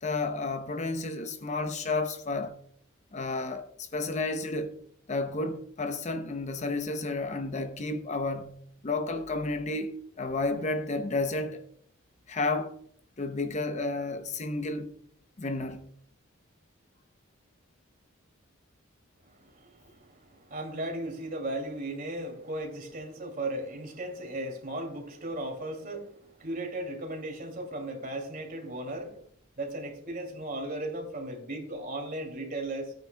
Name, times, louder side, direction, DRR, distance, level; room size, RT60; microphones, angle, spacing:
voice 1, 0.0-2.6 3.1-4.8 5.1-11.6 12.3-12.7 13.2-14.9 15.4-15.9, left 3 dB, 35° left, 0.7 m, -31 dB
voice 2, 19.2-29.2 29.6-32.9, right 1 dB, 45° right, 2.6 m, -36 dB
16.0 x 9.1 x 2.2 m
head